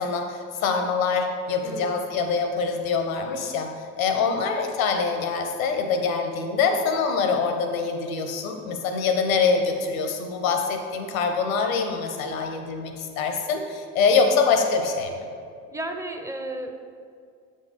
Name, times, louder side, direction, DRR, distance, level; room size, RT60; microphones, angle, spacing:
voice 1, 0.0-3.7 4.0-15.1, left 5 dB, 85° left, 5 dB, 0.7 m, -24 dB
voice 2, 1.6-2.0 4.1-4.4 15.7-16.8, right 2 dB, 10° right, 4 dB, 0.5 m, -34 dB
7.2 x 3.7 x 4.0 m, 2.2 s
hypercardioid pair, 55°, 40 cm